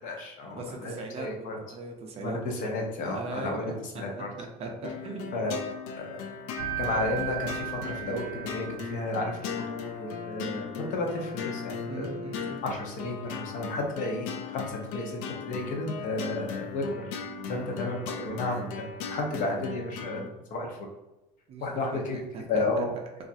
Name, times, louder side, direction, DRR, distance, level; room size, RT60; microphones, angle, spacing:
voice 1, 0.0-1.6 2.2-4.3 5.3-5.6 6.0-6.2 6.8-12.1 12.6-15.2 15.4-17.2 17.5-18.7 19.1-20.9 21.6-22.2 22.5-23.0, left 2 dB, 45° left, 1 dB, 0.6 m, -32 dB
voice 2, 0.5-2.4 3.1-3.7 3.9-4.0 4.4-5.4 11.9-12.6 17.5-17.8 21.5-21.6 21.9-22.8, right 3 dB, 35° right, 2 dB, 0.4 m, -39 dB
sound 1, 4.8-20.3, left 6 dB, 90° left, 0.4 m, -38 dB
sound 2, 6.6-9.4, right 14 dB, 85° right, 0.5 m, -36 dB
2.9 x 2.4 x 2.6 m, 1.0 s
cardioid pair, 145°, 18 cm